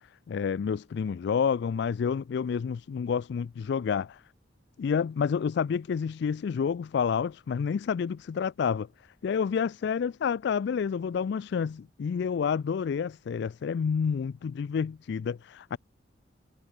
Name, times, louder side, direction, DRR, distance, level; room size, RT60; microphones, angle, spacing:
voice 1, 0.3-4.2 4.8-8.9 9.2-15.8, left 6 dB, 65° left, 0.3 m, -29 dB
head